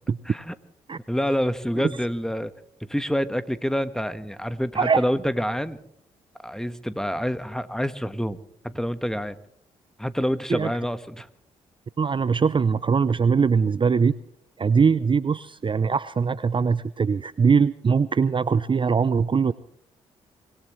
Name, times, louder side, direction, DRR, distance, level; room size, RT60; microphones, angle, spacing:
voice 1, 1.1-2.5 2.9-5.8 6.4-8.4 8.6-9.4 10.0-11.3, equal, 5° left, 12 dB, 1.4 m, -27 dB
voice 2, 12.0-14.1 14.6-19.5, right 5 dB, 35° right, 16 dB, 0.6 m, -21 dB
25.5 x 17.5 x 3.2 m, 0.71 s
hypercardioid pair, 45°, 15 cm